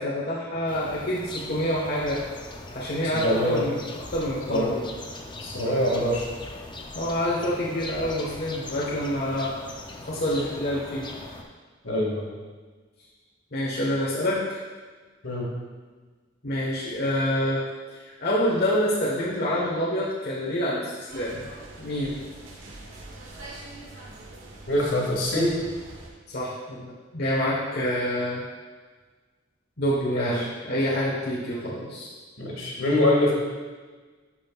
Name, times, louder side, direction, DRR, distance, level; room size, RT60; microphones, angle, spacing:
voice 1, 0.0-2.2 2.7-3.8 4.1-4.8 6.9-9.5 10.0-11.1 13.5-14.4 16.4-17.6 18.2-21.4 21.8-22.2 26.3-28.4 29.8-32.1, equal, 55° left, -8 dB, 1.4 m, -27 dB
sound 1, 0.7-11.4, left 2 dB, 25° left, 0.6 m, -40 dB
voice 2, 3.1-3.7 4.5-4.7 5.4-6.3 11.8-12.3 15.2-15.5 24.7-25.6 30.1-30.5 32.4-33.3, left 1 dB, 80° left, -3 dB, 2.1 m, -24 dB
sound 2, 21.1-26.1, right 2 dB, 85° right, 1.3 m, -44 dB
11.5 x 5.6 x 2.4 m, 1.4 s
head